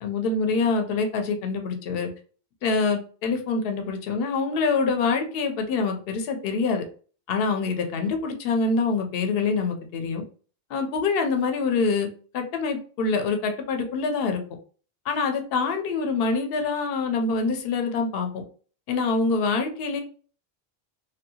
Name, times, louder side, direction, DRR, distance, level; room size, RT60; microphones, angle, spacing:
voice 1, 0.0-2.1 2.6-6.8 7.3-10.2 10.7-12.1 12.3-14.4 15.1-18.4 18.9-20.0, left 4 dB, 70° left, 5 dB, 0.7 m, -25 dB
2.6 x 2.2 x 2.7 m, 0.41 s
omnidirectional pair, 1.1 m